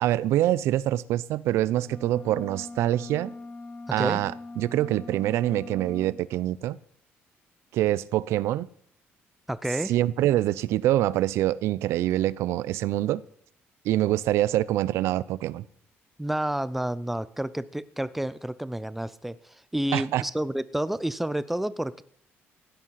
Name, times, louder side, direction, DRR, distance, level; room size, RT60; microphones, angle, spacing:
voice 1, 0.0-3.3 3.9-6.8 7.7-8.7 9.9-13.2 13.8-15.6 19.9-20.2, right 14 dB, 85° right, 0.6 m, -25 dB
sound 1, 1.8-6.2, left 2 dB, 20° left, 1.0 m, -42 dB
voice 2, 9.5-9.9 16.2-22.0, right 1 dB, 5° right, 0.6 m, -30 dB
16.5 x 10.5 x 5.8 m
cardioid pair, 130°, 4 cm